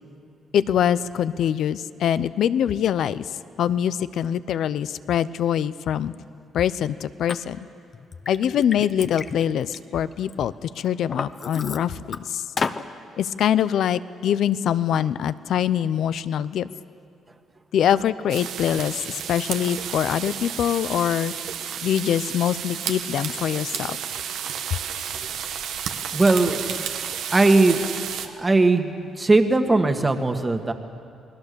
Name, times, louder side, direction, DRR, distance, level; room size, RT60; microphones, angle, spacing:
voice 1, 0.5-3.3 3.6-6.1 6.5-7.6 8.3-12.4 13.2-16.7 17.7-21.3 21.8-24.0, left 9 dB, 70° left, 15 dB, 0.6 m, -24 dB
Liquid, 7.3-7.4 7.9-10.3 10.8-12.2 12.6-12.8, left 5 dB, 40° left, 0.9 m, -31 dB
sound 1, 18.3-28.3, right 8 dB, 85° right, 1.3 m, -32 dB
voice 2, 26.1-26.9 27.3-27.8 28.4-30.7, right 2 dB, 20° right, 6 dB, 1.8 m, -19 dB
29.0 x 20.5 x 7.0 m, 2.5 s
cardioid pair, 90°, 0 cm